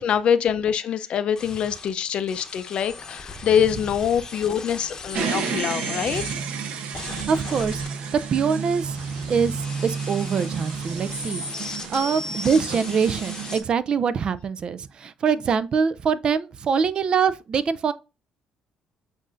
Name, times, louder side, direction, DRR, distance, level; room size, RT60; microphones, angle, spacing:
voice 1, 0.0-6.2, left 8 dB, 55° left, 0.5 m, -24 dB
sound 1, 1.4-6.3 6.9-13.6, left 3 dB, 30° left, 0.8 m, -38 dB
sound 2, 5.1-13.6, right 6 dB, 65° right, 0.8 m, -31 dB
voice 2, 7.3-9.0 9.3-17.9, right 6 dB, 45° right, 0.4 m, -24 dB
7.4 x 2.6 x 2.5 m
cardioid pair, 90°, 2 cm